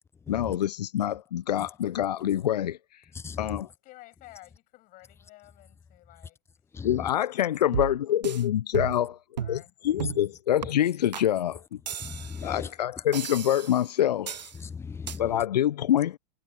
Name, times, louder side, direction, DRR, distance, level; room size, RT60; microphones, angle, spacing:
voice 1, 0.3-2.8 3.4-3.7 6.8-9.2 9.5-9.6 9.8-11.6 12.4-14.4 15.2-16.2, left 11 dB, 75° left, 0.6 m, -26 dB
voice 2, 3.1-3.6 6.7-7.1 12.0-12.7 14.6-15.3, left 5 dB, 10° left, 0.7 m, -37 dB
voice 3, 3.8-6.4 7.6-8.0 9.4-9.7, left 19 dB, 40° left, 7.6 m, -52 dB
sound 1, 7.7-8.4 8.7-9.1 9.4-9.6 10.0-10.3 10.6-10.7 11.1-11.3 11.9-12.5 13.1-13.8 14.3-14.6 15.1-15.2, right 8 dB, 85° right, 0.6 m, -34 dB
hypercardioid pair, 100°, 21 cm